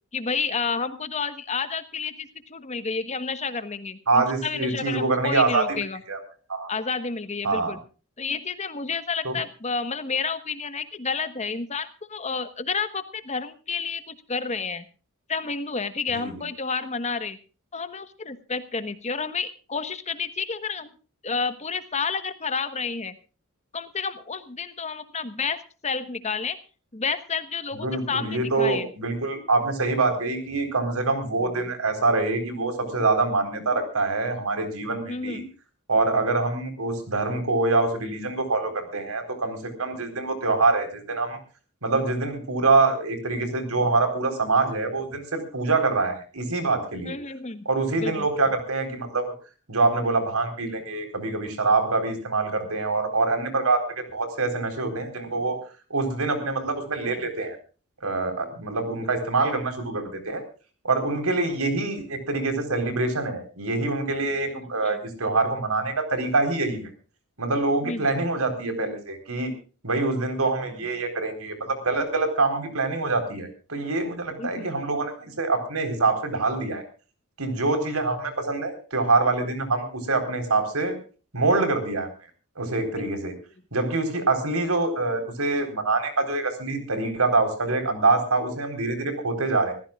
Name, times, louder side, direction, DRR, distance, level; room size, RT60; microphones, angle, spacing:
voice 1, 0.1-6.0 6.7-7.8 8.2-14.8 15.3-17.4 17.7-20.9 21.2-23.1 23.7-26.6 26.9-28.9 35.1-35.4 47.0-47.7 48.0-48.3 64.5-65.0 67.8-68.1 74.4-74.7 83.0-83.1, left 5 dB, 30° left, 11 dB, 1.3 m, -30 dB
voice 2, 4.1-5.8 6.1-6.2 6.5-6.7 7.4-7.7 9.2-9.4 16.1-16.3 27.7-35.4 35.9-41.4 41.8-47.2 47.6-49.3 49.7-55.6 55.9-57.6 58.0-60.4 60.8-66.9 67.4-69.5 69.8-76.8 77.4-81.0 81.3-82.1 82.6-83.3 83.7-89.7, right 3 dB, 80° right, 7 dB, 4.2 m, -25 dB
25.5 x 15.5 x 2.4 m, 0.37 s
head